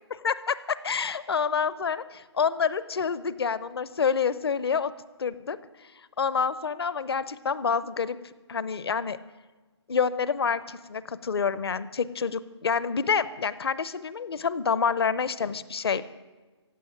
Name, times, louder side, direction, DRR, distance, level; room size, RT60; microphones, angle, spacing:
voice 1, 0.2-4.9 5.2-5.6 6.2-8.2 8.5-9.2 9.9-16.0, left 6 dB, 60° left, 17 dB, 0.8 m, -27 dB
15.5 x 7.5 x 9.8 m, 1.3 s
figure-of-eight pair, 145°, 15 cm